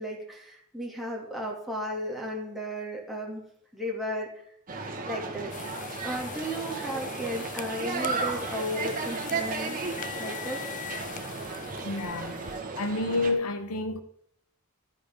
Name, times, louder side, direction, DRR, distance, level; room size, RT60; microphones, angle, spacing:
voice 1, 0.0-3.4 3.7-4.3 5.0-5.5 6.0-9.8 10.2-10.6, equal, ahead, 2.6 m, -34 dB
sound 1, 4.7-13.3, right 4 dB, 40° right, 1.7 m, -34 dB
sound 2, 5.5-12.6, left 8 dB, 35° left, 0.6 m, -41 dB
voice 2, 11.8-12.4 12.8-14.0, left 2 dB, 80° left, 1.0 m, -29 dB
12.0 x 9.7 x 3.7 m
head